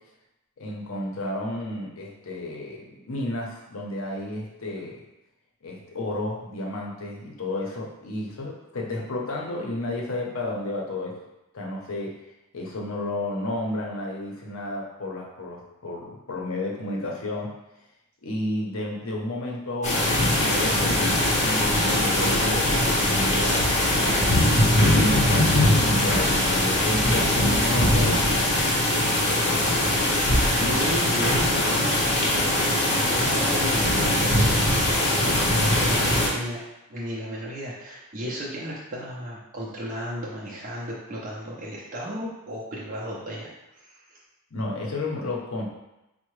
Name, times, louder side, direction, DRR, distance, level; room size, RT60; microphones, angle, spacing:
voice 1, 0.6-5.0 5.6-11.2 11.5-12.1 12.5-17.5 18.2-24.3 24.8-28.4 28.9-29.9 44.5-45.6, left 1 dB, 65° left, -2 dB, 0.7 m, -32 dB
sound 1, 19.8-36.3, left 1 dB, 30° left, 0.7 m, -21 dB
voice 2, 30.1-34.7 35.2-36.6 36.9-44.2, equal, 35° right, -6 dB, 0.6 m, -34 dB
4.6 x 2.1 x 3.1 m, 0.93 s
head